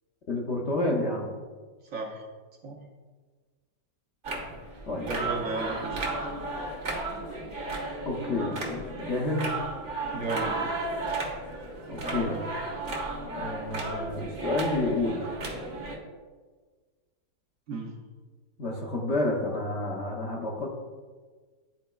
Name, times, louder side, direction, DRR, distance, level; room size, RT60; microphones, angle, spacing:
voice 1, 0.3-1.3 4.9-5.1 8.0-9.5 11.9-12.4 13.3-15.3 18.6-20.7, left 2 dB, 55° left, -2 dB, 0.9 m, -29 dB
voice 2, 1.9-2.2 2.6-2.8 5.1-6.1 10.1-10.7 17.7-17.9, right 3 dB, 60° right, 0 dB, 1.0 m, -34 dB
sound 1, 4.2-16.0, right 2 dB, 40° right, 0.9 m, -34 dB
10.5 x 4.1 x 2.3 m, 1.4 s
omnidirectional pair, 1.8 m